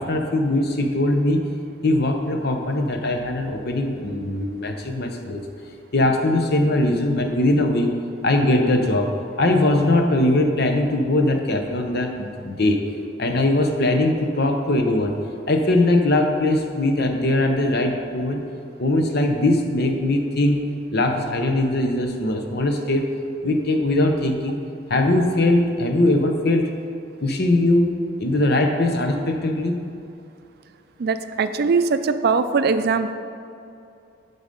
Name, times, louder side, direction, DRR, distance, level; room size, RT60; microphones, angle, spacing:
voice 1, 0.0-1.5 1.8-5.4 5.9-7.9 8.2-12.8 13.2-15.2 15.5-18.4 18.8-20.6 20.9-23.1 23.4-24.6 24.9-26.7 27.2-27.9 28.2-29.8, left 1 dB, 60° left, 4 dB, 0.8 m, -21 dB
voice 2, 31.0-33.1, right 4 dB, 55° right, 10 dB, 0.4 m, -21 dB
11.5 x 4.0 x 5.2 m, 2.6 s
head